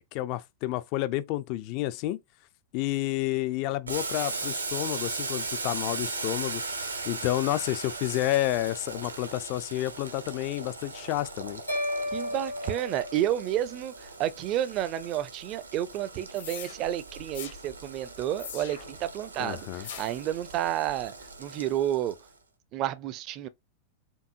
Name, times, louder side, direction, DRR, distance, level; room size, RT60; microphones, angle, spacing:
voice 1, 0.0-2.2 2.7-6.6 7.0-11.6 19.4-19.9, left 15 dB, 45° left, 0.3 m, -30 dB
Boiling, 3.9-22.3, right 3 dB, 80° right, 0.7 m, -38 dB
sound 1, 11.7-14.0, left 1 dB, 85° left, 1.5 m, -34 dB
voice 2, 12.1-21.1 21.4-22.2 22.7-23.5, right 12 dB, 40° right, 0.4 m, -30 dB
sound 2, 16.3-16.8 17.3-17.6 18.4-19.0 19.8-20.2, left 8 dB, 60° left, 0.8 m, -41 dB
4.5 x 2.6 x 2.6 m
figure-of-eight pair, 90°, 0 cm